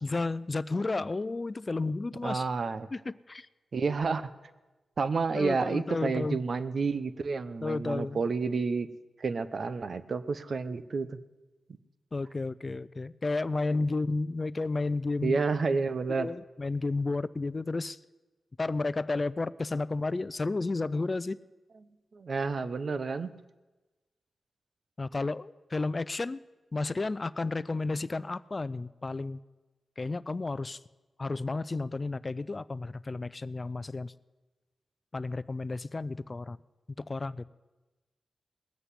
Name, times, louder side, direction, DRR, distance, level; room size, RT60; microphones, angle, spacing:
voice 1, 0.0-2.5 2.9-3.5 5.3-6.4 7.6-8.2 12.1-15.4 16.1-18.0 18.6-21.4 25.0-26.4 26.7-29.4 30.0-30.8 31.2-34.1 35.1-36.6 37.0-37.4, left 3 dB, 40° left, 17 dB, 0.5 m, -32 dB
voice 2, 2.2-2.9 3.7-4.3 5.0-8.9 9.2-11.2 15.2-16.3 22.1-23.3, right 4 dB, 60° right, 13 dB, 0.8 m, -30 dB
19.5 x 7.9 x 8.2 m, 1.1 s
cardioid pair, 55°, 0 cm